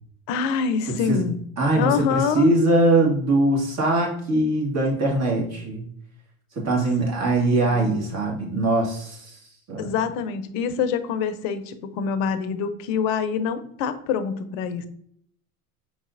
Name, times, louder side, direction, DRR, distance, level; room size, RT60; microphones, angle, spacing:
voice 1, 0.3-1.4 1.8-2.5 7.7-8.0 9.8-14.9, left 6 dB, 60° left, 10 dB, 0.7 m, -25 dB
voice 2, 0.9-1.2 1.6-5.9 6.5-9.4 9.7-9.9, right 2 dB, 40° right, -1 dB, 1.7 m, -22 dB
5.1 x 4.0 x 2.5 m, 0.64 s
hypercardioid pair, 100°, 43 cm